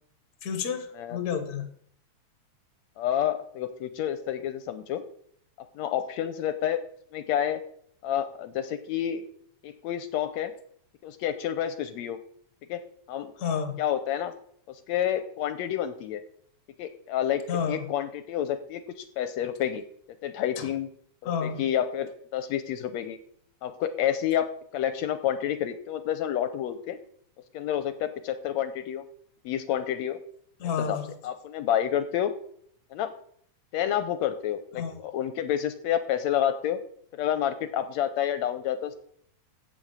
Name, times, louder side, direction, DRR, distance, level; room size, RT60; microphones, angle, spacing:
voice 1, 0.4-1.7 13.4-13.8 17.5-17.9 20.6-20.7 21.2-21.6 30.6-31.1 34.8-35.0, left 6 dB, 45° left, 7 dB, 1.4 m, -30 dB
voice 2, 3.0-5.0 5.8-6.8 7.1-7.6 8.0-9.2 9.6-10.5 11.0-12.2 12.7-12.8 13.1-13.3 13.8-14.3 14.7-16.2 16.8-19.8 20.2-20.9 21.2-23.2 23.6-24.5 24.7-27.0 27.5-29.0 29.5-30.2 30.8-31.0 31.2-32.3 32.9-33.1 33.7-36.8 37.1-38.9, left 10 dB, 80° left, 10 dB, 1.8 m, -29 dB
7.8 x 7.2 x 8.1 m, 0.64 s
omnidirectional pair, 3.3 m